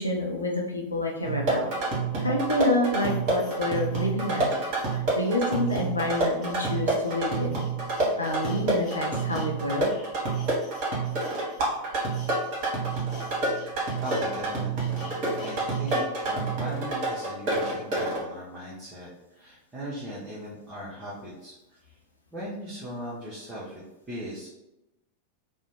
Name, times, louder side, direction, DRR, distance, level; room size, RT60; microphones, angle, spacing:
voice 1, 0.0-1.7 2.2-4.5 4.8-7.6 8.2-9.9, left 2 dB, 80° left, 0 dB, 0.5 m, -28 dB
sound 1, 1.3-18.2, right 3 dB, 40° right, 1.0 m, -28 dB
sound 2, 1.4-1.5 2.1-9.5 9.8-16.1 16.5-16.6, left 3 dB, 30° left, 0.6 m, -48 dB
voice 2, 14.0-21.8 22.3-23.8 24.1-24.5, equal, 20° right, -8 dB, 0.8 m, -39 dB
2.6 x 2.1 x 2.9 m, 0.93 s
figure-of-eight pair, 90°, 0 cm